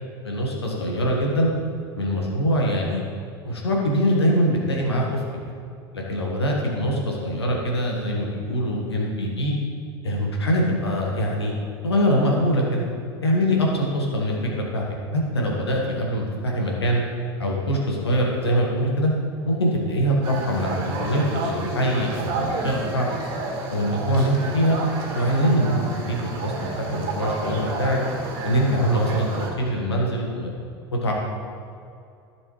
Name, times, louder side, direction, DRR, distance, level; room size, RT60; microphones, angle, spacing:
voice 1, 0.2-1.5 2.0-3.0 3.4-5.2 5.9-9.5 10.0-11.5 11.8-12.8 13.2-14.8 15.1-17.0 17.4-19.1 19.5-23.1 23.7-24.8 25.1-28.0 28.4-30.5 30.9-31.1, equal, 75° left, -1 dB, 1.6 m, -23 dB
sound 1, 20.2-29.5, right 2 dB, 40° right, 1.9 m, -31 dB
14.5 x 6.2 x 3.2 m, 2.5 s
figure-of-eight pair, 80°, 14 cm